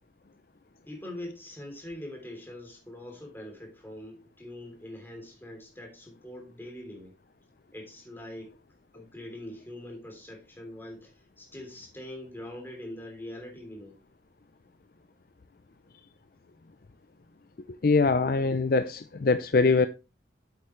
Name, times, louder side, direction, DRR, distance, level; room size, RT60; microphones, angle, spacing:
voice 1, 0.8-7.1 7.7-8.5 8.9-13.9, left 1 dB, 10° left, 3.2 m, -43 dB
voice 2, 17.8-19.9, left 4 dB, 50° left, 0.5 m, -23 dB
8.6 x 8.1 x 3.2 m
head